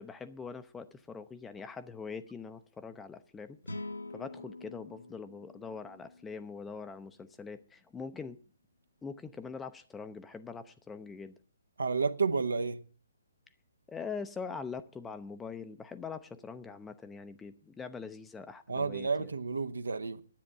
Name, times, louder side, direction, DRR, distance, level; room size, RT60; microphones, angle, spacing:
voice 1, 0.0-3.6 4.1-8.4 9.0-11.3 13.9-19.3, left 5 dB, 10° left, 0.5 m, -43 dB
sound 1, 3.6-6.9, left 2 dB, 80° left, 1.0 m, -45 dB
voice 2, 11.8-12.8 18.7-20.2, right 4 dB, 70° right, 0.8 m, -31 dB
10.5 x 8.6 x 7.4 m
figure-of-eight pair, 130°, 0 cm